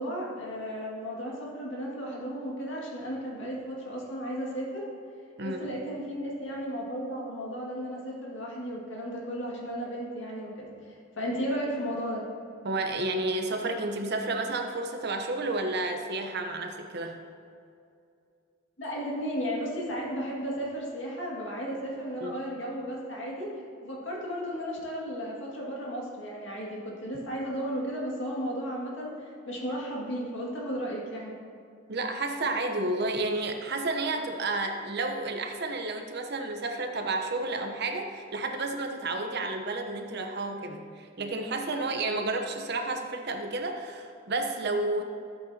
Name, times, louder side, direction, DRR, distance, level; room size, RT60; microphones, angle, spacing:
voice 1, 0.0-4.9 5.4-12.2 18.8-23.5 23.8-31.3, equal, 70° left, -3 dB, 2.1 m, -34 dB
voice 2, 12.6-17.2 22.2-22.4 31.9-45.0, right 2 dB, 55° right, 4 dB, 0.9 m, -31 dB
12.5 x 8.2 x 2.9 m, 2.4 s
head